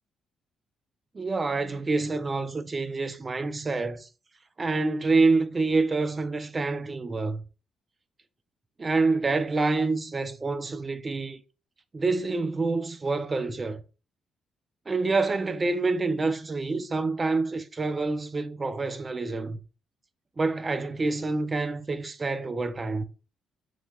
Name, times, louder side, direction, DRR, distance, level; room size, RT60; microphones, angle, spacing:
voice 1, 1.1-4.1 4.6-7.4 8.8-11.4 11.9-13.8 14.9-19.6 20.4-23.0, right 3 dB, 30° right, 0.4 m, -27 dB
3.1 x 2.7 x 2.2 m
cardioid pair, 90°, 0 cm